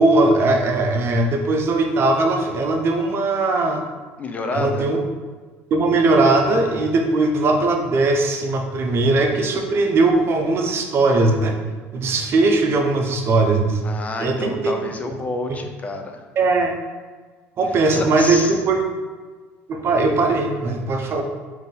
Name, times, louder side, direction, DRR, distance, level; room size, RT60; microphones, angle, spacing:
voice 1, 0.0-3.8 4.5-5.0 5.7-11.6 11.9-13.8 14.2-14.7 15.1-15.2 15.5-15.6 16.4-16.7 17.6-18.8 19.7-21.2, right 2 dB, 45° right, 3 dB, 0.6 m, -19 dB
voice 2, 4.2-4.9 13.8-16.2 17.9-18.5, left 3 dB, 25° left, 4 dB, 0.5 m, -29 dB
3.9 x 2.7 x 3.7 m, 1.4 s
supercardioid pair, 105°, 6 cm